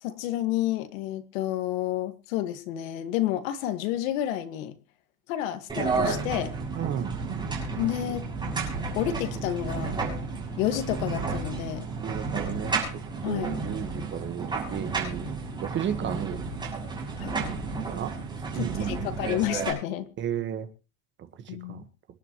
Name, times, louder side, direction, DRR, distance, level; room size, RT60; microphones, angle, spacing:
voice 1, 0.0-4.7 5.3-6.5 7.8-8.3 9.0-10.0 10.6-11.9 13.2-13.6 17.2-17.3 18.5-20.1 21.5-21.9, left 13 dB, 75° left, 2.0 m, -30 dB
sound 1, 5.7-19.7, right 4 dB, 10° right, 6.9 m, -32 dB
voice 2, 6.7-7.1 12.0-15.3 15.6-16.4 17.9-18.2 18.5-19.3 20.2-20.7 21.5-21.8, right 9 dB, 25° right, 1.6 m, -33 dB
26.5 x 10.5 x 3.1 m
supercardioid pair, 155°, 41 cm